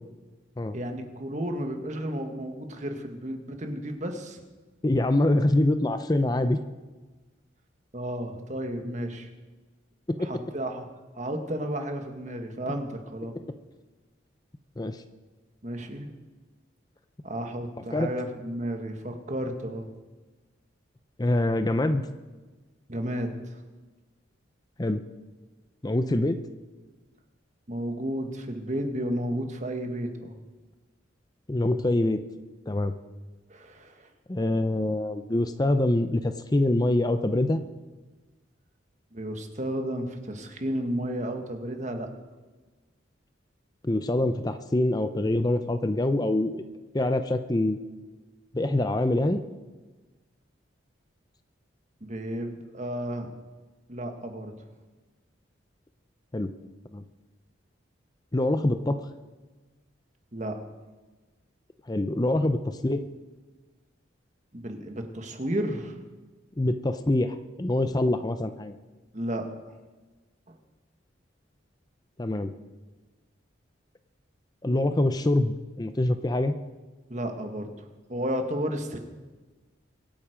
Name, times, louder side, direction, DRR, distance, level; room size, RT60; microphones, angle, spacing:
voice 1, 0.7-4.4 7.9-9.3 10.2-10.8 11.1-13.3 15.6-16.1 17.2-19.9 22.9-23.3 27.7-30.4 33.5-34.1 39.1-42.1 52.0-53.3 53.9-54.5 60.3-60.6 64.5-66.0 69.1-69.5 70.5-70.6 77.1-77.7 78.1-79.0, right 1 dB, 40° right, 5 dB, 1.6 m, -32 dB
voice 2, 4.8-6.6 10.1-10.3 14.8-15.0 17.9-18.1 21.2-22.1 24.8-25.0 25.8-26.4 31.5-32.2 32.7-33.0 34.3-37.7 43.8-46.6 46.9-47.8 48.5-49.4 56.3-56.5 56.9-57.0 58.3-59.0 61.9-63.0 66.6-68.7 72.2-72.5 74.6-76.5, left 1 dB, 20° left, 9 dB, 0.5 m, -25 dB
24.0 x 9.1 x 5.1 m, 1.3 s
head